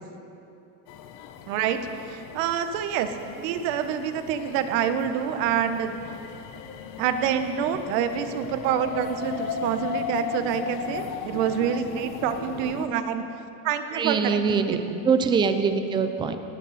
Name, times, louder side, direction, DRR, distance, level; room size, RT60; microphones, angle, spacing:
sound 1, 0.9-12.9, left 7 dB, 45° left, 1.0 m, -37 dB
voice 1, 1.5-1.8 2.0-5.9 7.0-13.2 13.6-15.0, right 8 dB, 60° right, 9 dB, 1.3 m, -27 dB
voice 2, 13.9-14.8 15.0-16.4, right 5 dB, 10° right, 9 dB, 0.3 m, -23 dB
17.5 x 16.5 x 4.3 m, 2.9 s
supercardioid pair, 155°, 44 cm